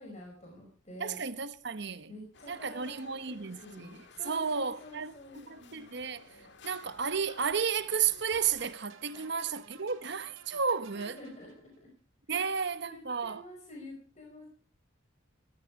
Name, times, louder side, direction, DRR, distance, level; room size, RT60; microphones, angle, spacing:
voice 1, 0.0-1.2 2.1-5.8 9.1-9.2 10.9-11.9 12.3-12.5 12.8-14.4, left 1 dB, 35° left, 5.2 m, -49 dB
voice 2, 1.0-2.1 2.5-6.3 6.6-11.2 12.3-13.4, right 6 dB, 60° right, 1.0 m, -33 dB
sound 1, 2.3-8.7, left 4 dB, 60° left, 1.8 m, -55 dB
sound 2, 8.3-11.8, right 4 dB, 85° right, 2.7 m, -56 dB
18.5 x 13.5 x 4.8 m
head